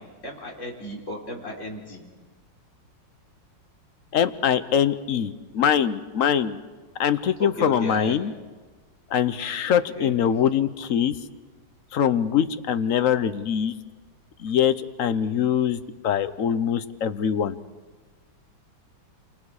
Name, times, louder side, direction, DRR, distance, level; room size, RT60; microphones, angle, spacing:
voice 1, 0.0-2.0 7.4-8.2 10.0-10.1, left 1 dB, 40° left, -2 dB, 4.3 m, -35 dB
voice 2, 4.1-6.6 7.0-8.3 9.1-11.2 11.9-13.7 14.4-17.6, left 8 dB, 55° left, 12 dB, 1.0 m, -23 dB
28.0 x 27.0 x 4.9 m, 1.3 s
omnidirectional pair, 2.0 m